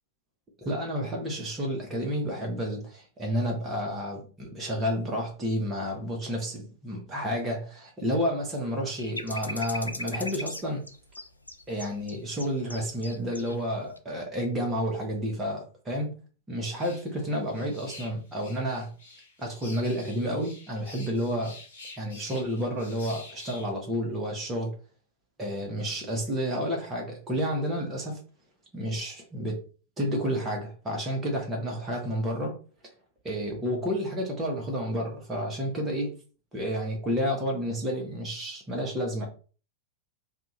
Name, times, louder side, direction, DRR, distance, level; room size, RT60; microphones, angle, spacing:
voice 1, 0.6-10.8 11.7-16.1 16.5-18.9 19.4-21.5 22.0-24.7 25.4-28.2 28.7-29.6 30.0-32.6 33.2-36.1 36.5-39.3, equal, 15° right, 1.0 m, -30 dB
sound 1, 9.0-13.5 13.9-14.0, left 1 dB, 85° left, 0.3 m, -38 dB
sound 2, 16.7-23.7, left 2 dB, 65° left, 1.1 m, -48 dB
2.7 x 2.4 x 4.0 m
figure-of-eight pair, 90°, 0 cm